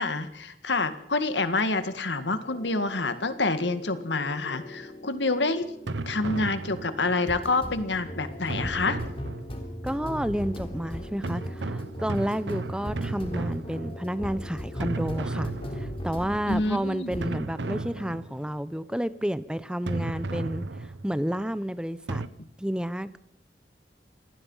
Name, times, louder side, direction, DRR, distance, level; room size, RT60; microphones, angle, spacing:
voice 1, 0.0-5.6 6.1-9.0 16.5-17.3, left 3 dB, 85° left, 1.9 m, -27 dB
sound 1, 2.5-16.8 17.1-17.4, equal, 30° left, 3.9 m, -39 dB
sound 2, 5.9-7.2 8.5-9.8 11.2-14.3 14.8-16.3 17.2-18.6 19.9-21.2 22.1-22.3, right 2 dB, 90° right, 1.0 m, -34 dB
voice 2, 9.8-22.2 22.6-23.2, equal, 5° right, 0.8 m, -31 dB
26.5 x 18.5 x 5.7 m
head